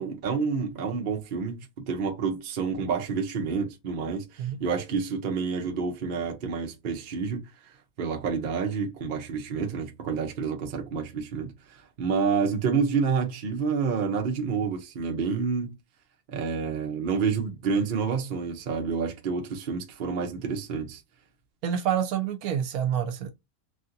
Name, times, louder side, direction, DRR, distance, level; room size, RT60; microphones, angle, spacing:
voice 1, 0.0-15.7 16.3-21.0, right 5 dB, 50° right, 0.6 m, -29 dB
voice 2, 21.6-23.3, right 9 dB, 80° right, 1.1 m, -27 dB
3.2 x 2.7 x 2.5 m
omnidirectional pair, 1.6 m